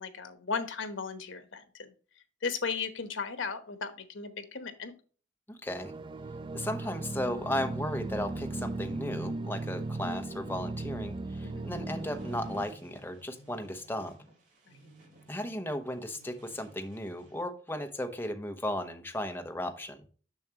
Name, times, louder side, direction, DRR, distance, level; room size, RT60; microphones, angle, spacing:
voice 1, 0.0-1.9 2.4-4.9 11.4-11.7 14.7-14.8, left 5 dB, 85° left, 10 dB, 1.1 m, -36 dB
voice 2, 5.5-5.9 6.5-14.2 15.3-20.0, left 1 dB, 10° left, 6 dB, 0.9 m, -35 dB
sound 1, 5.7-12.6, right 2 dB, 25° right, 0.3 m, -37 dB
sound 2, 11.8-17.5, right 1 dB, 45° right, 3.1 m, -55 dB
7.1 x 6.2 x 2.9 m, 0.39 s
head